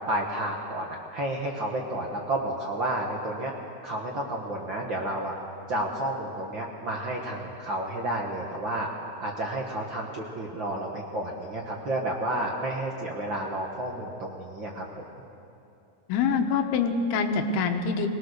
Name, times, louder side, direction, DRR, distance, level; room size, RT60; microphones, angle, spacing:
voice 1, 0.1-3.5 3.8-5.3 5.7-8.9 9.2-14.8, right 1 dB, 55° right, -1 dB, 1.3 m, -31 dB
voice 2, 16.1-18.1, left 5 dB, 90° left, 6 dB, 3.1 m, -25 dB
22.0 x 19.5 x 6.6 m, 2.7 s
omnidirectional pair, 4.4 m